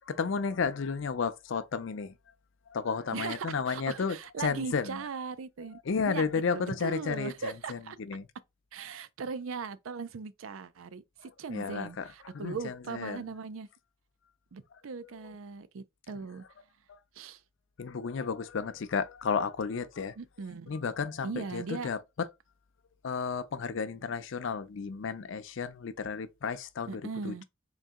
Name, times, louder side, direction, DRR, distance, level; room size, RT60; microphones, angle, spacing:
voice 1, 0.2-2.1 2.7-5.0 5.9-7.8 8.1-8.3 11.5-11.9 12.3-13.2 17.8-20.1 20.7-22.0 23.0-27.4, left 5 dB, 65° left, 0.5 m, -32 dB
voice 2, 3.1-6.2 6.5-8.0 8.7-13.7 14.5-16.4 17.1-17.4 20.2-20.8 21.2-21.9 26.8-27.4, right 5 dB, 85° right, 0.5 m, -39 dB
3.9 x 2.6 x 3.5 m
head